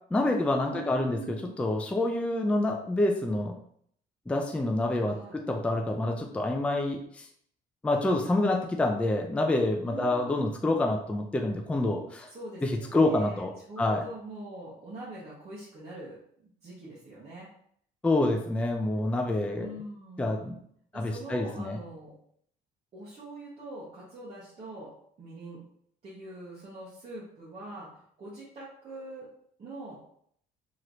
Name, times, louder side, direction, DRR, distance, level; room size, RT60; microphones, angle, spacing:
voice 1, 0.1-3.6 4.3-7.3 7.8-12.3 12.6-14.0 18.0-19.7 20.2-20.6 20.9-21.8, left 2 dB, 5° left, 3 dB, 0.3 m, -27 dB
voice 2, 0.7-1.6 5.1-5.4 9.8-10.5 12.3-17.5 19.5-20.6 20.9-22.2 22.9-25.6 26.0-29.3 29.6-30.0, right 2 dB, 40° right, -8 dB, 1.0 m, -43 dB
3.0 x 2.9 x 2.6 m, 0.64 s
cardioid pair, 110°, 17 cm